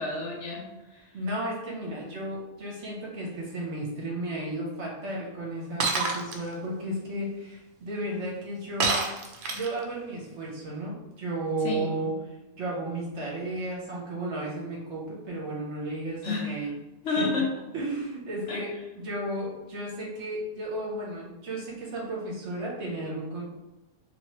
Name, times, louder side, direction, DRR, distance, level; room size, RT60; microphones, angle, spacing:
voice 1, 0.0-1.1 11.6-12.1 16.2-16.5 17.0-17.5 18.5-18.6, left 3 dB, 60° left, -1 dB, 0.9 m, -30 dB
voice 2, 1.1-9.0 9.5-16.7 17.1-17.4 17.7-18.7 19.0-23.4, right 1 dB, 55° right, -4 dB, 1.0 m, -33 dB
Shatter, 5.8-6.4 8.8-9.8, right 4 dB, 90° right, 0.4 m, -26 dB
3.0 x 2.9 x 2.9 m, 1.0 s
omnidirectional pair, 1.5 m